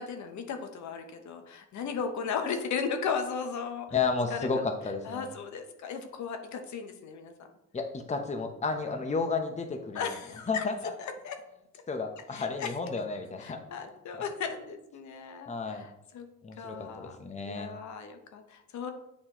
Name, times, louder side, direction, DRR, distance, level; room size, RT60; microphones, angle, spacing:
voice 1, 0.0-3.9 4.3-4.5 5.0-7.3 9.9-10.6 11.0-11.4 11.7-11.8 12.3-12.7 13.4-16.3 16.6-17.2 17.4-18.9, left 6 dB, 70° left, 6 dB, 0.8 m, -36 dB
voice 2, 3.9-5.3 7.7-10.1 10.5-10.9 11.9-13.6 15.5-15.9 16.4-17.7, left 4 dB, 25° left, 5 dB, 0.8 m, -32 dB
7.6 x 4.2 x 3.0 m, 0.85 s
cardioid pair, 90°, 30 cm